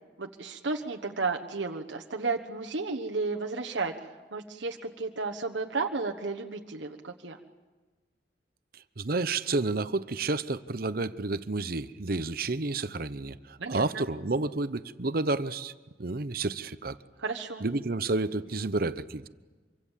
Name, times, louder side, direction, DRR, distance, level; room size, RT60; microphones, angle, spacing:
voice 1, 0.2-3.9 4.3-7.4 13.6-14.0 17.2-17.6, right 4 dB, 85° right, 3 dB, 1.3 m, -33 dB
voice 2, 8.7-15.7 16.0-17.0 17.6-19.3, right 3 dB, 55° right, 13 dB, 0.9 m, -30 dB
26.0 x 24.5 x 7.4 m, 1.3 s
head